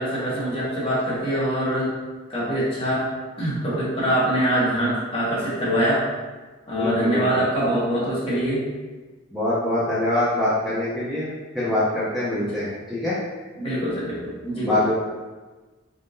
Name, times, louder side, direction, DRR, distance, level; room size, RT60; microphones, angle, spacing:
voice 1, 0.0-1.9 2.3-3.1 3.4-6.0 6.7-8.6 12.4-12.5 13.6-14.8, right 1 dB, 25° left, -8 dB, 1.3 m, -24 dB
voice 2, 6.8-7.2 9.3-11.3 11.5-13.2 14.6-14.9, left 1 dB, ahead, -11 dB, 0.7 m, -24 dB
4.1 x 3.6 x 2.7 m, 1.3 s
head